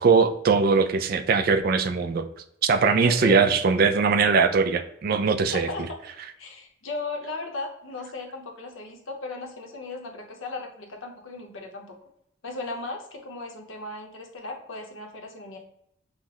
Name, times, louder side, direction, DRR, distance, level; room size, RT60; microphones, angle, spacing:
voice 1, 0.0-2.3 2.6-5.7, right 5 dB, 50° right, 9 dB, 0.3 m, -21 dB
voice 2, 3.0-3.4 5.5-6.0 6.4-12.0 12.4-15.6, left 3 dB, 75° left, 2 dB, 0.8 m, -36 dB
5.7 x 2.1 x 2.8 m, 0.74 s
head